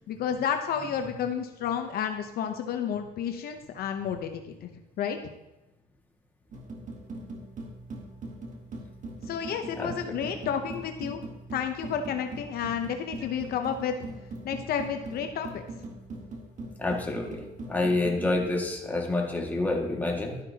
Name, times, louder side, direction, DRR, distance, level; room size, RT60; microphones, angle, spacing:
voice 1, 0.1-4.7 5.0-5.2 9.3-11.2 11.5-13.9 14.4-15.7, left 8 dB, 65° left, 6 dB, 0.8 m, -31 dB
sound 1, 6.5-18.4, right 2 dB, 45° right, 1.7 m, -41 dB
voice 2, 16.8-17.4 17.7-20.4, left 2 dB, 10° left, -1 dB, 1.9 m, -28 dB
12.0 x 9.6 x 2.9 m, 0.99 s
cardioid pair, 110°, 17 cm